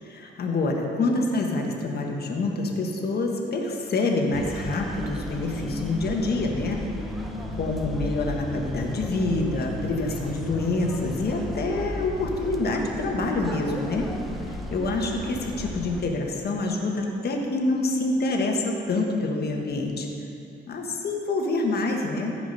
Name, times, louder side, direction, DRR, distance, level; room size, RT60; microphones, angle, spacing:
voice 1, 0.0-6.8 7.6-14.1 14.4-20.1 20.7-22.4, left 2 dB, 55° left, 1 dB, 1.5 m, -26 dB
sound 1, 4.3-16.0, equal, ahead, 1.1 m, -34 dB
14.0 x 5.0 x 5.4 m, 2.7 s
cardioid pair, 90°, 20 cm